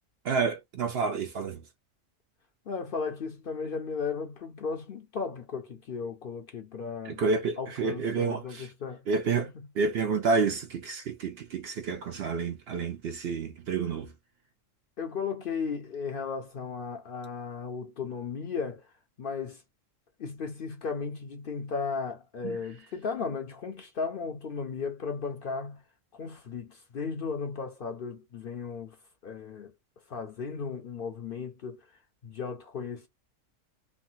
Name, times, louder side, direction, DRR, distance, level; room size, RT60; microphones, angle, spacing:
voice 1, 0.2-1.6 7.0-8.7 9.1-14.1 22.4-22.6, right 4 dB, 65° right, 0.7 m, -29 dB
voice 2, 2.7-7.2 7.6-9.1 9.6-9.7 15.0-18.9 19.2-19.6 20.2-25.8 26.1-29.0 29.2-29.7 30.1-31.9 32.2-33.1, left 5 dB, 55° left, 0.6 m, -35 dB
3.2 x 2.1 x 2.6 m
omnidirectional pair, 1.3 m